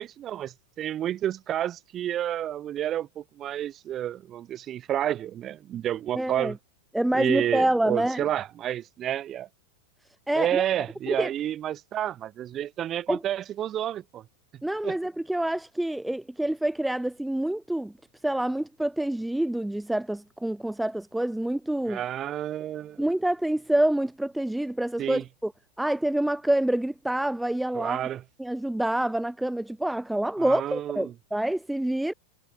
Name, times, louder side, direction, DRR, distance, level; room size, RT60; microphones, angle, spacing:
voice 1, 0.0-6.6 7.1-9.5 10.3-14.2 14.8-15.0 21.9-23.0 25.0-25.2 27.8-28.2 30.4-31.1, right 11 dB, 30° right, 2.5 m, -30 dB
voice 2, 6.2-6.6 6.9-8.3 10.3-10.6 11.1-11.3 13.1-13.2 14.6-17.9 18.2-22.0 23.0-25.5 25.8-28.1 28.4-32.1, right 1 dB, 5° right, 0.5 m, -27 dB
figure-of-eight pair, 90°, 0 cm